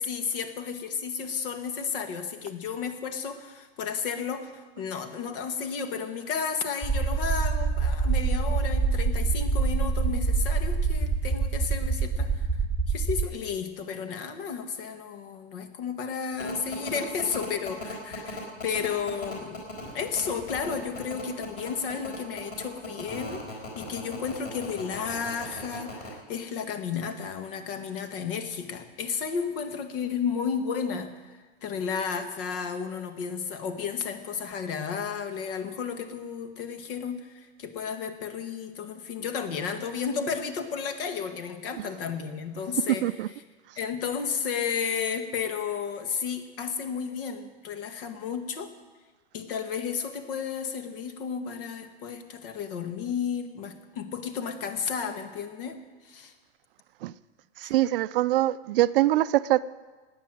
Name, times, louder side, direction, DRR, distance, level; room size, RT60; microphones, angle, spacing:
voice 1, 0.0-12.5 12.9-19.7 19.9-43.1 43.8-48.7 49.3-55.8 56.0-56.3 57.6-57.7, left 6 dB, 55° left, 8 dB, 1.9 m, -33 dB
sound 1, 6.8-13.2, right 4 dB, ahead, 0.9 m, -25 dB
sound 2, 16.4-26.1, left 3 dB, 30° left, 4.3 m, -38 dB
voice 2, 42.9-43.3 57.0-57.1 57.6-59.6, right 15 dB, 55° right, 16 dB, 0.5 m, -23 dB
14.5 x 9.5 x 9.2 m, 1.3 s
supercardioid pair, 150°, 33 cm